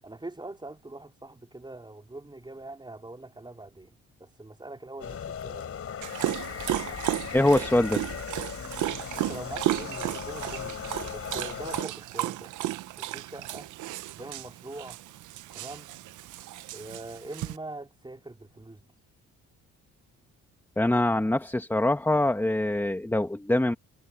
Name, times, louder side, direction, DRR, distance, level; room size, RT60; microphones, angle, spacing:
voice 1, 0.0-5.7 9.1-12.5 13.0-13.7 14.2-15.0 15.5-15.9 16.7-18.9, right 2 dB, 15° right, 4.3 m, -43 dB
sound 1, 5.0-11.8, left 7 dB, 50° left, 4.9 m, -38 dB
Dog, 6.0-17.6, right 15 dB, 80° right, 0.7 m, -34 dB
voice 2, 7.3-8.0 20.8-23.7, left 1 dB, 5° left, 1.6 m, -24 dB
cardioid pair, 90°, 30 cm